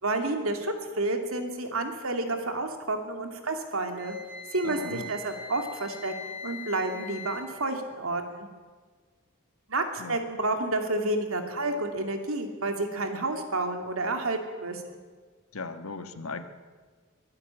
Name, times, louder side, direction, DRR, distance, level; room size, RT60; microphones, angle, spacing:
voice 1, 0.0-4.2 4.5-8.5 9.7-15.0, right 2 dB, 75° right, 5 dB, 2.6 m, -30 dB
Wind instrument woodwind instrument, 3.9-7.5, left 3 dB, 45° left, 3.8 m, -42 dB
voice 2, 4.6-5.1 10.0-10.2 15.5-16.4, left 3 dB, 85° left, 9 dB, 1.4 m, -37 dB
23.5 x 12.5 x 8.9 m, 1.5 s
head